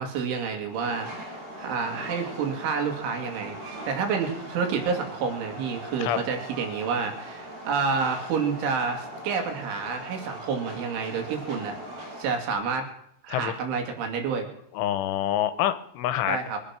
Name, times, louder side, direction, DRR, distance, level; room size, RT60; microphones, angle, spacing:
voice 1, 0.0-11.8 12.2-12.9 13.2-14.5 16.3-16.6, right 5 dB, 85° right, 3 dB, 4.9 m, -29 dB
Train, 0.7-12.6, equal, 65° right, 6.2 m, -40 dB
voice 2, 14.8-16.4, left 11 dB, 85° left, 13 dB, 3.4 m, -26 dB
23.0 x 9.8 x 6.0 m, 0.72 s
omnidirectional pair, 5.4 m